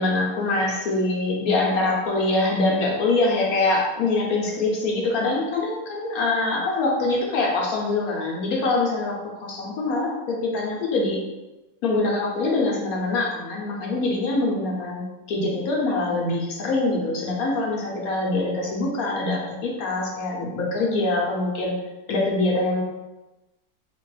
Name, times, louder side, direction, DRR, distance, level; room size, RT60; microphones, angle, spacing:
voice 1, 0.0-11.2 11.8-21.7 22.1-22.8, left 2 dB, 65° left, -2 dB, 1.0 m, -24 dB
3.3 x 2.9 x 3.1 m, 1.1 s
omnidirectional pair, 1.9 m